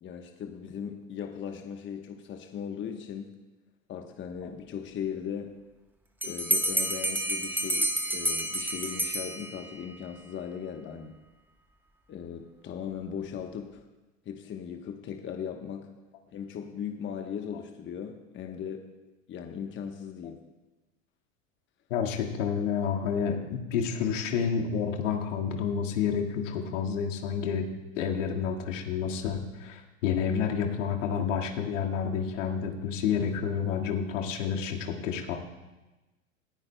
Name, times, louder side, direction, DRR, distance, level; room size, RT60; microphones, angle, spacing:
voice 1, 0.0-3.3 3.9-5.5 6.2-11.1 12.1-13.8 14.2-15.9 16.3-18.8 19.3-20.4 23.1-23.2, left 8 dB, 30° left, 4 dB, 1.1 m, -38 dB
Bell, 6.2-9.8, right 1 dB, 5° right, 1.2 m, -29 dB
voice 2, 21.9-27.7 28.0-35.4, left 7 dB, 70° left, 1 dB, 2.0 m, -29 dB
19.5 x 14.0 x 2.2 m, 1.1 s
hypercardioid pair, 95°, 39 cm